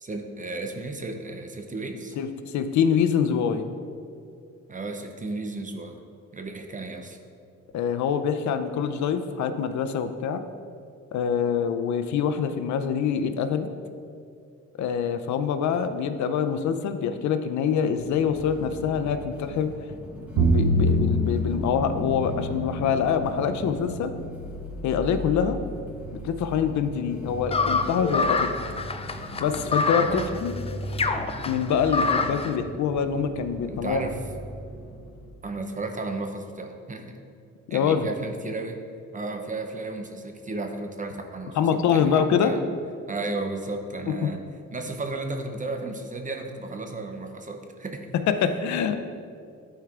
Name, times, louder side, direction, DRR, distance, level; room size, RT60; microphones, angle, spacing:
voice 1, 0.0-2.2 4.7-6.0 6.3-7.2 30.0-30.3 33.7-34.2 35.4-37.2 37.7-38.8 39.1-42.6 43.1-44.4 44.7-48.1, right 3 dB, 25° right, 4 dB, 0.6 m, -34 dB
voice 2, 2.2-3.6 7.7-10.4 11.1-13.7 14.8-19.7 20.3-24.1 24.8-25.6 26.2-28.5 29.4-30.5 31.5-34.0 37.7-38.1 41.6-42.5 44.1-44.3 48.3-49.0, left 7 dB, 70° left, 9 dB, 0.6 m, -25 dB
sound 1, 18.0-35.3, equal, 5° right, 1.5 m, -39 dB
Bowed string instrument, 20.4-26.5, equal, 70° right, 0.9 m, -28 dB
sound 2, 27.5-32.5, left 4 dB, 20° left, 0.4 m, -26 dB
11.5 x 4.5 x 2.5 m, 2.3 s
cardioid pair, 90°, 30 cm